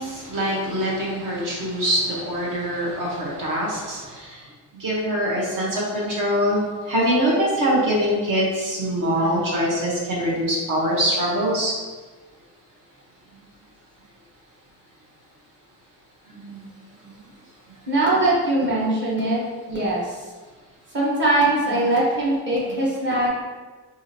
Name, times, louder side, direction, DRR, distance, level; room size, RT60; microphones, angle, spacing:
voice 1, 0.0-4.4 4.7-11.7 16.3-16.7 17.0-17.2, equal, 50° right, -4 dB, 1.1 m, -24 dB
voice 2, 17.9-19.4 19.7-20.2 20.9-23.3, right 2 dB, 25° right, -6 dB, 1.1 m, -21 dB
4.7 x 2.6 x 2.8 m, 1.3 s
cardioid pair, 165°, 41 cm